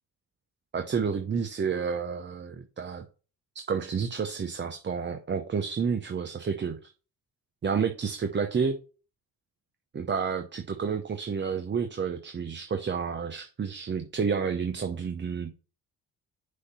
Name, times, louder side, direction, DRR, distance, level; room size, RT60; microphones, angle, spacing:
voice 1, 0.7-3.0 3.5-6.9 7.6-8.8 9.9-15.5, right 6 dB, 30° right, 0.7 m, -30 dB
6.3 x 2.8 x 5.6 m
supercardioid pair, 65°, 38 cm